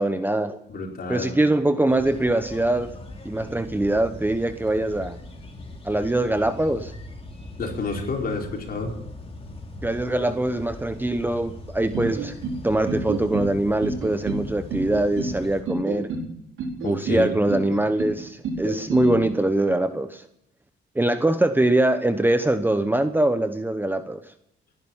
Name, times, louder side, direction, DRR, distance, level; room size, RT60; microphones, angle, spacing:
voice 1, 0.0-0.6 1.1-2.9 3.2-5.2 5.8-6.9 9.8-12.3 12.6-16.1 16.8-20.2 20.9-24.2, right 1 dB, 10° right, 10 dB, 1.0 m, -23 dB
voice 2, 0.7-1.3 7.6-9.0 16.8-17.3, left 3 dB, 50° left, 1 dB, 4.5 m, -29 dB
sound 1, 1.9-15.6, left 1 dB, 30° left, 3.3 m, -40 dB
sound 2, 11.9-12.6 12.9-13.5 13.8-14.4 14.7-15.3 15.7-16.3 16.6-17.2 17.5-18.1 18.4-19.1, right 4 dB, 85° right, 4.0 m, -29 dB
18.5 x 10.5 x 7.3 m, 0.78 s
cardioid pair, 90°, 20 cm